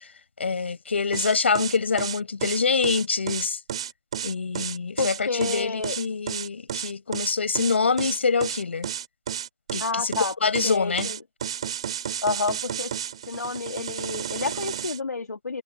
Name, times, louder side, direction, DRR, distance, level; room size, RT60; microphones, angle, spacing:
voice 1, 0.4-3.6 4.2-8.9 9.7-10.2 10.4-11.1, left 5 dB, 40° left, 7.6 m, -25 dB
sound 1, 1.1-15.0, right 9 dB, 20° right, 5.3 m, -32 dB
voice 2, 5.0-6.0 9.8-10.4 10.6-11.2 12.2-12.9 13.3-15.6, left 4 dB, 65° left, 2.1 m, -29 dB
hypercardioid pair, 180°, 9 cm